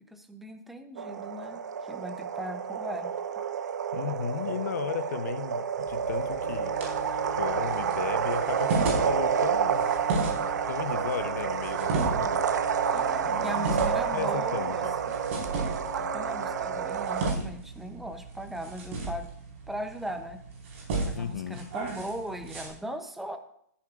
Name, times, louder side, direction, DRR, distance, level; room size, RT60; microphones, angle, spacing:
voice 1, 0.1-3.1 12.9-15.2 15.6-19.3 19.7-20.4 20.8-23.4, equal, ahead, 0.6 m, -39 dB
sound 1, 1.0-17.3, right 8 dB, 75° right, 0.9 m, -29 dB
voice 2, 3.9-6.8 7.3-9.9 10.7-12.5 13.2-14.9 21.1-21.6, left 8 dB, 70° left, 0.8 m, -35 dB
sound 2, 5.8-22.7, right 2 dB, 45° right, 4.5 m, -36 dB
sound 3, 6.4-17.2, left 7 dB, 90° left, 1.4 m, -44 dB
14.0 x 9.8 x 2.4 m
hypercardioid pair, 165°, 9 cm